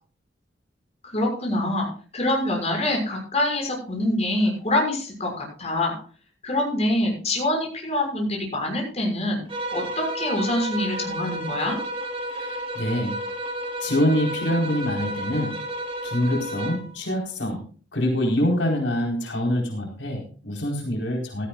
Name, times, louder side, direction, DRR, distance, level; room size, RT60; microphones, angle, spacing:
voice 1, 1.0-1.9 2.1-5.9 6.4-9.4 9.7-11.8, left 1 dB, 35° left, 1 dB, 6.3 m, -25 dB
sound 1, 9.5-16.9, right 1 dB, 30° right, 3.6 m, -31 dB
voice 2, 12.3-13.1 13.8-15.5 16.0-17.6 17.9-21.5, equal, 85° left, 0 dB, 4.5 m, -25 dB
17.0 x 14.0 x 2.5 m, 0.40 s
head